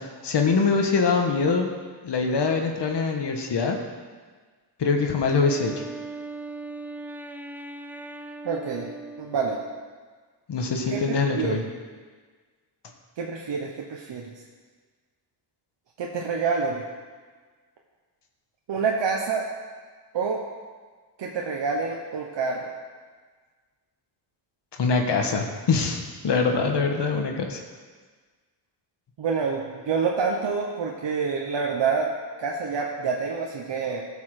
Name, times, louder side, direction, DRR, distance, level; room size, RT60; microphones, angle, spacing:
voice 1, 0.0-1.7 2.0-3.8 4.8-5.8 10.5-11.6 24.8-27.6, left 4 dB, 75° left, 3 dB, 1.4 m, -24 dB
Wind instrument woodwind instrument, 5.2-9.9, right 3 dB, 5° right, 0.5 m, -39 dB
voice 2, 8.4-8.9 9.2-9.6 10.9-11.7 13.2-14.3 16.0-16.9 18.7-19.5 20.1-20.5 21.2-22.7 29.2-34.1, right 5 dB, 85° right, -1 dB, 1.1 m, -27 dB
15.5 x 5.6 x 6.5 m, 1.5 s
wide cardioid pair, 105°, 42 cm